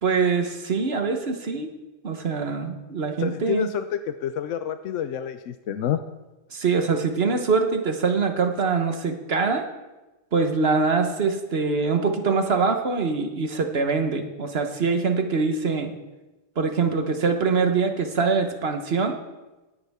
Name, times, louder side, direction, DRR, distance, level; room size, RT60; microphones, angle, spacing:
voice 1, 0.0-1.7 2.0-3.7 6.5-9.7 10.3-15.9 16.6-19.2, right 4 dB, 50° right, 5 dB, 1.3 m, -24 dB
voice 2, 3.2-6.0, left 9 dB, 70° left, 9 dB, 0.9 m, -28 dB
17.0 x 9.5 x 3.6 m, 1.1 s
omnidirectional pair, 1.4 m